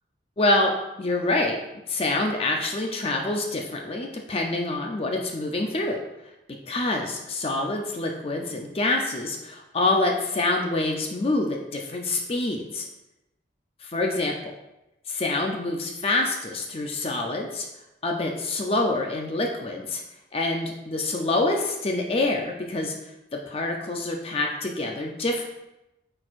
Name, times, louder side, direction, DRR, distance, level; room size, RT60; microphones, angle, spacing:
voice 1, 0.4-0.7 1.0-1.6 1.9-6.0 6.7-12.9 13.8-14.5 15.1-17.7 18.0-20.0 20.3-22.9 23.3-25.5, left 2 dB, 35° left, 2 dB, 0.5 m, -26 dB
8.6 x 4.4 x 2.5 m, 0.92 s
head